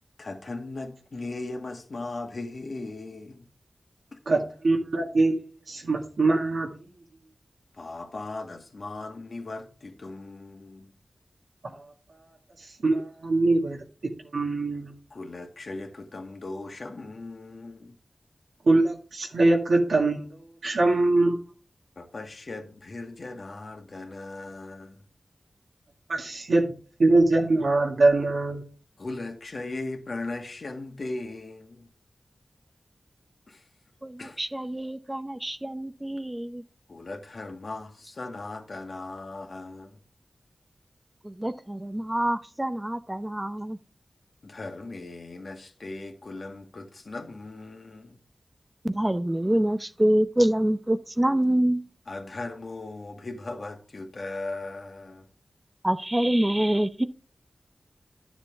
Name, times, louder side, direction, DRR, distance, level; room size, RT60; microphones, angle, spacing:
voice 1, 0.2-3.4 4.1-4.2 7.7-10.9 15.1-18.0 21.9-25.0 29.0-31.9 33.5-33.7 34.2-34.4 36.9-40.0 44.4-48.2 52.1-55.3, left 2 dB, 65° left, 1.8 m, -38 dB
voice 2, 4.2-6.7 11.6-11.8 12.8-13.8 14.3-14.9 18.6-20.3 20.6-21.4 26.1-26.7 27.0-28.6, right 2 dB, 85° right, 1.8 m, -23 dB
voice 3, 34.0-36.6 41.2-43.8 48.8-51.8 55.8-57.1, right 1 dB, 15° right, 0.8 m, -26 dB
11.0 x 7.0 x 3.5 m
cardioid pair, 55°, 0 cm